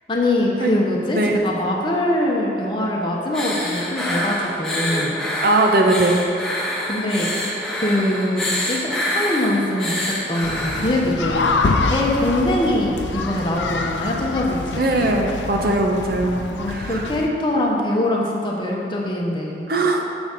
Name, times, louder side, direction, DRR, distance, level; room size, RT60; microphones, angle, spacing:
voice 1, 0.1-5.2 6.9-7.3 7.8-11.4 11.9-14.9 16.6-19.7, left 1 dB, 25° left, -2 dB, 0.8 m, -23 dB
sound 1, 3.3-10.9, left 1 dB, ahead, 1.0 m, -26 dB
voice 2, 5.4-6.2 6.5-6.8 14.8-17.1 19.7-20.0, right 2 dB, 55° right, 2 dB, 0.6 m, -20 dB
sound 2, 10.4-17.3, left 3 dB, 85° left, 0.5 m, -26 dB
7.1 x 4.0 x 6.5 m, 2.6 s
head